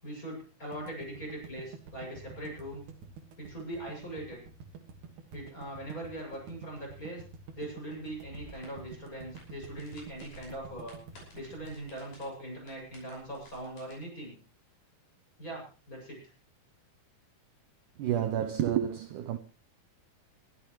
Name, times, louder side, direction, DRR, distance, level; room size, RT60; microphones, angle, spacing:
voice 1, 0.0-2.9 3.4-4.4 5.3-7.2 7.6-14.3 15.4-16.2, right 1 dB, 20° left, 7.5 m, -41 dB
sound 1, 0.7-12.9, right 5 dB, 55° right, 2.9 m, -48 dB
sound 2, 8.1-13.9, left 1 dB, 65° left, 7.5 m, -55 dB
voice 2, 18.0-19.4, right 10 dB, 75° right, 1.9 m, -29 dB
22.5 x 13.5 x 3.2 m
omnidirectional pair, 4.5 m